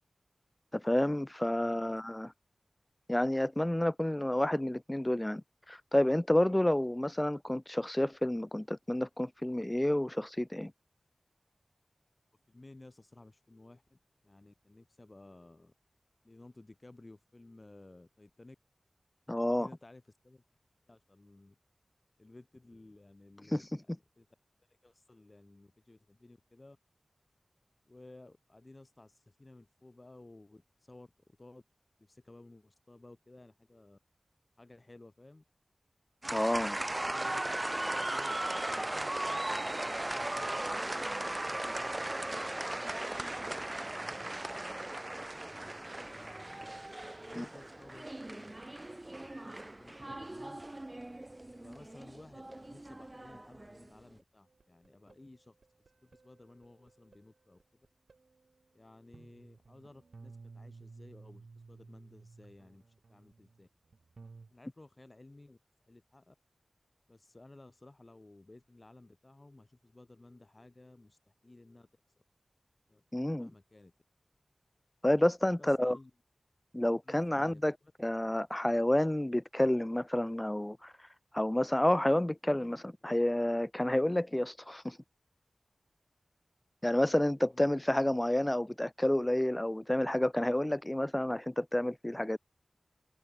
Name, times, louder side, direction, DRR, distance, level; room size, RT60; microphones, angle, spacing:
voice 1, 0.7-2.3 3.1-10.7 19.3-19.7 23.5-23.8 36.3-36.8 47.4-47.5 73.1-73.5 75.0-76.0 76.7-77.7 78.0-80.9 81.3-85.0 86.8-92.4, left 1 dB, 15° left, 1.1 m, -30 dB
voice 2, 1.6-2.0 12.5-15.7 16.2-18.6 19.6-20.4 20.9-21.6 22.2-24.3 24.8-26.8 27.9-31.1 31.4-31.6 32.0-34.0 34.6-35.4 37.0-37.5 37.9-41.2 41.5-44.5 45.6-46.6 47.2-48.5 48.8-50.6 51.6-55.6 56.0-57.6 58.7-63.7 64.5-65.6 65.9-66.4 67.1-71.9 72.9-73.9 75.6-76.1 77.0-77.9 87.5-87.7, left 2 dB, 40° left, 6.8 m, -56 dB
sound 1, 36.2-53.9, right 1 dB, 30° right, 2.0 m, -37 dB
sound 2, 54.5-57.2 57.6-58.7 59.1-64.5, right 4 dB, 75° right, 4.4 m, -55 dB
cardioid pair, 45°, 0 cm